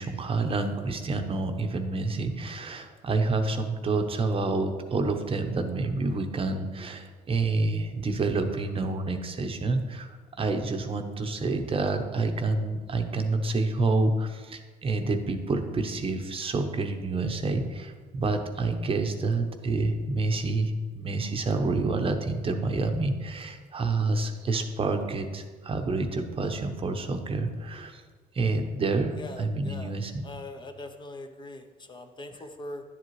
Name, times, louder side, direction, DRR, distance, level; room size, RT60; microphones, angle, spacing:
voice 1, 0.0-28.0 28.3-30.2, right 3 dB, 35° right, 6 dB, 0.8 m, -28 dB
voice 2, 29.2-29.9 30.2-32.8, left 2 dB, 25° left, 6 dB, 0.7 m, -42 dB
10.5 x 7.7 x 3.2 m, 1.4 s
cardioid pair, 110°, 17 cm